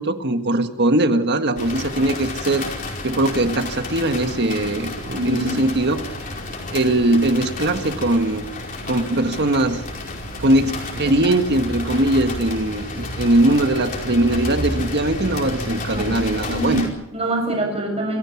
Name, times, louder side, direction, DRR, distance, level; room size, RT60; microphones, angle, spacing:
voice 1, 0.0-2.6 3.0-6.0 6.7-8.4 8.9-9.8 10.4-16.9, right 1 dB, 50° right, 7 dB, 1.7 m, -20 dB
sound 1, 1.6-16.9, left 2 dB, 40° left, 5.0 m, -31 dB
voice 2, 5.1-5.6 15.8-16.1 16.5-18.2, right 1 dB, 25° right, 0 dB, 6.6 m, -25 dB
27.0 x 16.0 x 7.3 m, 0.86 s
head